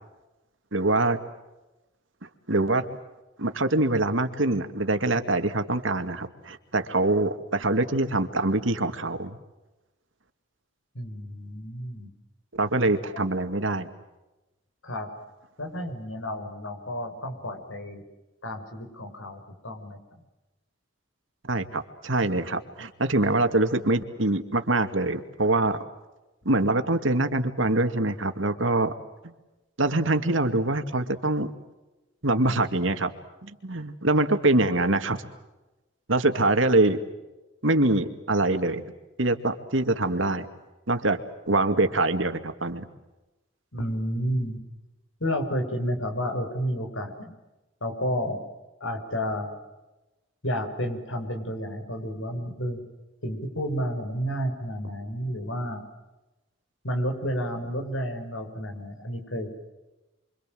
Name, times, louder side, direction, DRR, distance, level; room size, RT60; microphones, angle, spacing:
voice 1, 0.7-1.2 2.5-2.9 3.4-9.4 12.5-13.9 21.4-25.8 26.5-28.9 29.2-29.3 29.8-31.5 32.2-33.1 33.4-35.2 36.1-37.0 37.6-38.8 39.2-40.5 40.9-41.2 41.5-42.9, right 2 dB, 75° right, 8 dB, 2.3 m, -24 dB
voice 2, 10.9-12.1 14.8-15.1 15.6-18.0 18.4-20.0 43.7-44.6 45.2-47.3 47.8-48.4 48.8-49.5 50.4-52.9 53.2-55.8 56.8-59.5, equal, 75° left, 5 dB, 6.0 m, -31 dB
29.0 x 25.0 x 7.8 m, 1.0 s
head